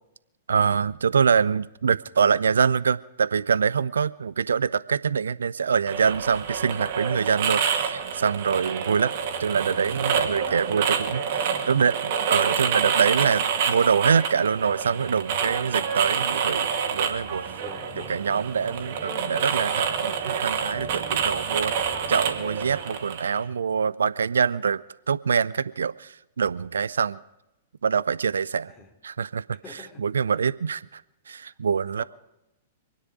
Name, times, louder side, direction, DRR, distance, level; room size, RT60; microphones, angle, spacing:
voice 1, 0.5-9.1 9.4-11.2 11.7-16.7 16.9-17.4 18.0-21.7 22.1-24.8 25.1-27.2 27.8-28.7 29.0-31.0 31.3-32.0, right 6 dB, 70° right, 0.4 m, -24 dB
sound 1, 5.9-23.4, right 7 dB, 50° right, 2.2 m, -27 dB
voice 2, 6.6-6.9 17.6-18.1 28.7-28.9 29.6-30.0 32.0-32.1, left 4 dB, 20° left, 3.8 m, -44 dB
sound 2, 12.7-22.8, equal, ahead, 3.4 m, -47 dB
26.5 x 10.0 x 5.0 m
figure-of-eight pair, 105°, 0 cm